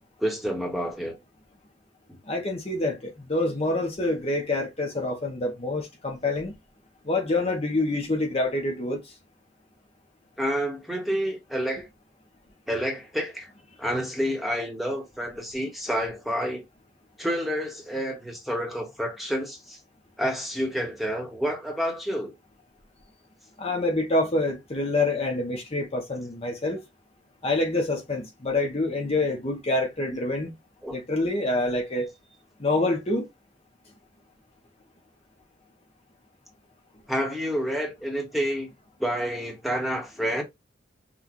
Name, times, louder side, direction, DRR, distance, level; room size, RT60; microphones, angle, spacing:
voice 1, 0.2-1.1 2.1-2.2 10.4-11.9 12.7-13.5 13.8-16.6 17.2-19.8 20.2-22.3 30.8-31.0 37.1-38.7 39.0-40.4, equal, ahead, 1.2 m, -29 dB
voice 2, 2.3-3.0 3.3-6.5 7.1-9.0 23.6-26.8 27.4-30.5 30.9-32.1 32.6-33.3, left 2 dB, 35° left, 0.9 m, -26 dB
6.0 x 2.4 x 3.0 m
head